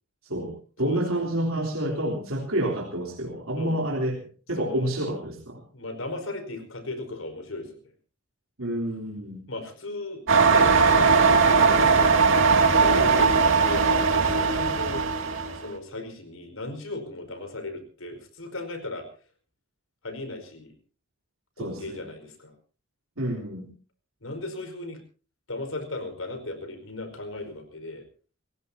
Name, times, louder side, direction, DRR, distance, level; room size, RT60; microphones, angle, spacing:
voice 1, 0.2-4.2 4.5-5.6 8.6-9.4 21.6-22.0 23.2-23.7, right 1 dB, 90° right, -1 dB, 3.5 m, -29 dB
voice 2, 0.8-1.2 3.5-3.8 4.6-5.0 5.7-7.8 9.5-12.3 12.7-15.0 15.5-19.1 20.0-20.7 21.6-22.5 24.2-25.0 25.5-28.0, left 2 dB, 75° left, 8 dB, 4.9 m, -36 dB
sound 1, 10.3-15.6, right 5 dB, 70° right, 2.4 m, -19 dB
29.0 x 16.5 x 2.8 m, 0.38 s
head